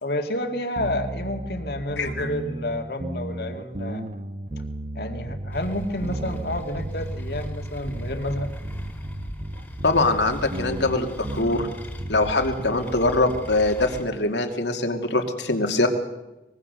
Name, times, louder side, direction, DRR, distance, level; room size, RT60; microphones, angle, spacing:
voice 1, 0.0-4.0 4.9-8.5, left 1 dB, 60° left, 5 dB, 2.0 m, -30 dB
sound 1, 0.8-12.6, right 1 dB, 40° right, 1.0 m, -34 dB
voice 2, 2.0-2.3 9.8-11.7 12.1-15.9, left 2 dB, 80° left, 5 dB, 2.5 m, -23 dB
sound 2, 5.5-14.0, equal, 10° left, 2.4 m, -38 dB
24.0 x 21.0 x 6.7 m, 0.99 s
head